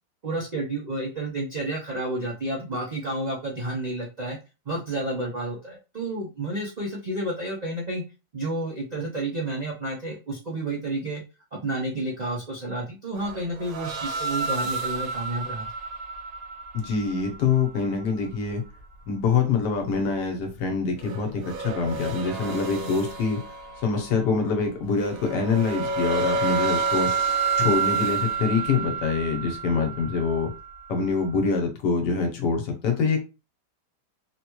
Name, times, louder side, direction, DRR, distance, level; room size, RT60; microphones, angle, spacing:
voice 1, 0.2-4.4 4.7-8.0 8.3-11.2 11.5-15.7, right 1 dB, 85° right, -2 dB, 0.3 m, -30 dB
sound 1, 13.2-18.5 21.0-24.4 25.0-31.0, right 4 dB, 65° right, 1.0 m, -29 dB
voice 2, 16.7-18.6 19.1-23.4 23.8-30.5 30.9-33.2, left 4 dB, 85° left, 4 dB, 1.5 m, -25 dB
3.8 x 2.2 x 3.0 m, 0.30 s
omnidirectional pair, 1.8 m